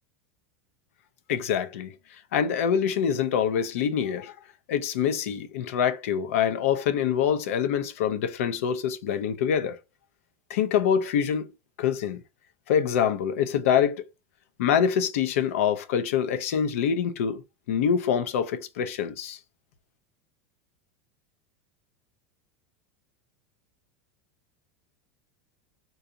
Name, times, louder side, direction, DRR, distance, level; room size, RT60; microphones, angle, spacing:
voice 1, 1.3-1.9 2.3-4.3 4.7-9.8 10.5-11.5 11.8-12.2 12.7-14.1 14.6-19.4, left 8 dB, 80° left, 0.6 m, -25 dB
4.0 x 2.4 x 2.6 m
supercardioid pair, 180°, 7 cm